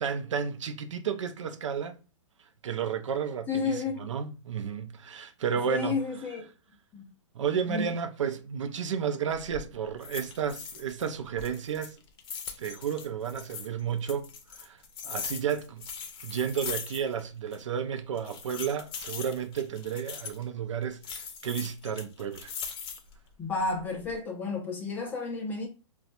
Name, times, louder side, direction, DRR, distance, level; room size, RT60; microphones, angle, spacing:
voice 1, 0.0-2.0 2.6-6.0 7.3-12.0 12.6-14.8 15.0-15.9 16.2-22.5, right 7 dB, 80° right, 0.5 m, -32 dB
voice 2, 3.5-4.0 5.7-6.5 6.9-7.1 7.7-7.9 23.4-25.7, left 4 dB, 10° left, 0.7 m, -31 dB
sound 1, 9.3-9.6 10.0-11.1 11.4-13.7 14.1-17.3 17.5-17.6 18.2-20.4 21.0-23.1 23.6-24.2, left 6 dB, 50° left, 0.7 m, -40 dB
4.1 x 2.3 x 2.5 m
hypercardioid pair, 150°, 16 cm